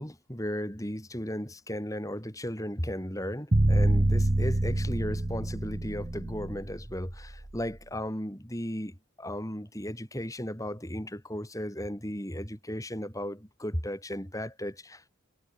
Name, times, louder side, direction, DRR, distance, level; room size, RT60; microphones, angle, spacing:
voice 1, 0.0-15.1, equal, 15° left, 7.5 m, -35 dB
sound 1, 3.5-7.6, right 1 dB, 30° right, 0.8 m, -26 dB
head